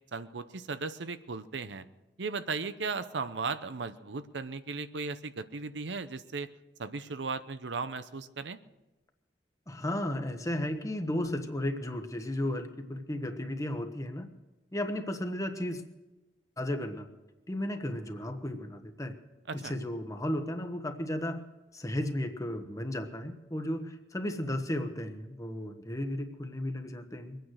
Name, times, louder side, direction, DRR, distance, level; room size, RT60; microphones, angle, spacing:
voice 1, 0.1-1.8 2.2-6.5 6.8-8.6 19.5-19.8, right 4 dB, 90° right, 12 dB, 0.8 m, -36 dB
voice 2, 9.7-14.3 14.7-15.8 16.6-17.1 17.5-19.2 19.5-21.4 21.7-27.4, left 1 dB, 20° left, 6 dB, 1.2 m, -34 dB
22.5 x 9.2 x 6.5 m, 1.0 s
head